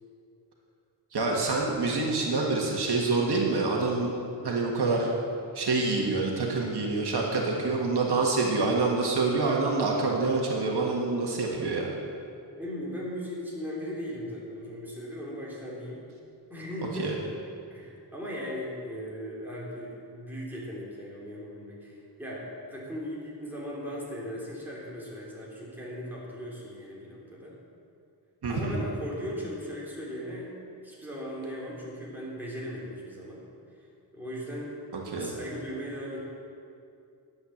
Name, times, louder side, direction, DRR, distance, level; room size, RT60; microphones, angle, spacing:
voice 1, 1.1-4.1 4.4-5.1 5.5-11.9 17.0-17.1 28.4-28.8 34.9-35.3, right 3 dB, 70° right, -1 dB, 1.8 m, -26 dB
voice 2, 12.6-16.0 16.5-17.2 17.7-27.6 28.5-30.5 30.8-33.4 34.1-34.8 35.2-36.2, equal, 5° right, -6 dB, 3.3 m, -38 dB
11.5 x 8.4 x 7.2 m, 2.5 s
wide cardioid pair, 140°, 41 cm